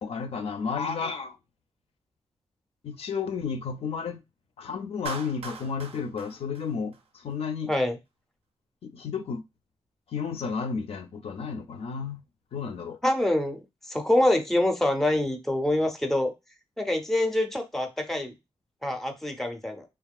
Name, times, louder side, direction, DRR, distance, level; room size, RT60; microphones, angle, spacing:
voice 1, 0.0-1.4 2.8-4.2 4.6-7.7 8.8-9.4 10.1-12.2 12.5-13.0, left 5 dB, 70° left, 0.4 m, -32 dB
Clapping, 5.1-7.4, right 5 dB, 70° right, 0.5 m, -41 dB
voice 2, 13.0-16.3 16.8-18.3 18.8-19.8, left 1 dB, 5° left, 0.5 m, -25 dB
3.4 x 2.3 x 2.3 m
wide cardioid pair, 145°, 11 cm